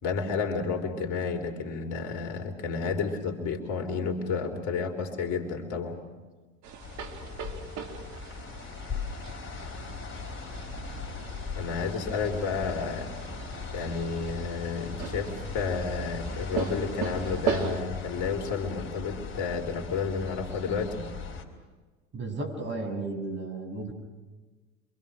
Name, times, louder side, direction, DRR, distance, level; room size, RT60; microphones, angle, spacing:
voice 1, 0.0-6.0 11.6-13.1 13.7-21.1, left 5 dB, 50° left, 4 dB, 3.8 m, -31 dB
sound 1, 6.6-17.8, right 6 dB, 50° right, 2.5 m, -38 dB
sound 2, 6.8-21.4, left 4 dB, 35° left, 4.5 m, -39 dB
voice 2, 22.1-23.9, right 2 dB, 30° right, 4 dB, 6.7 m, -34 dB
27.0 x 25.0 x 6.3 m, 1.3 s
hypercardioid pair, 85°, 37 cm